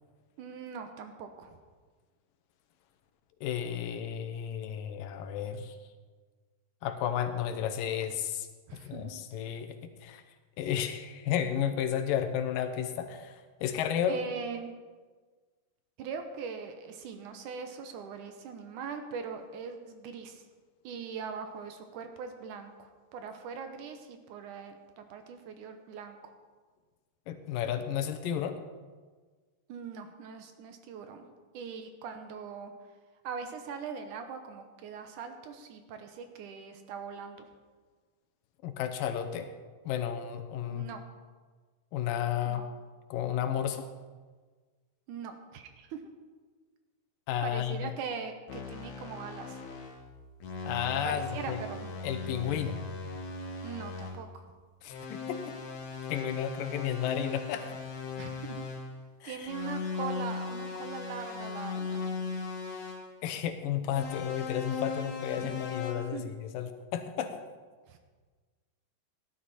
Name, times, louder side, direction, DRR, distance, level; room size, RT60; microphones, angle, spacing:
voice 1, 0.4-1.6 8.7-9.1 14.1-14.7 16.0-20.4 20.8-26.3 29.7-31.3 31.5-32.7 33.2-37.5 40.7-41.0 42.5-42.7 45.1-46.0 47.4-49.6 51.0-51.9 53.6-54.4 58.2-58.7 59.3-62.1 65.4-65.5 66.1-66.3 67.9-68.0, right 6 dB, 75° right, 6 dB, 2.4 m, -41 dB
voice 2, 3.4-5.8 6.8-8.5 8.9-9.8 10.0-10.2 10.6-14.2 27.3-28.6 38.6-39.5 39.9-40.9 41.9-42.7 43.1-43.9 47.3-47.9 50.7-51.6 52.0-52.9 54.8-55.5 56.1-57.6 59.2-59.5 63.2-67.4, left 9 dB, 85° left, 7 dB, 2.6 m, -32 dB
sound 1, 48.5-50.0 50.4-54.2 54.9-58.9 59.5-63.1 63.9-65.9, left 4 dB, 60° left, 2.8 m, -38 dB
16.5 x 11.0 x 4.2 m, 1.4 s
omnidirectional pair, 3.9 m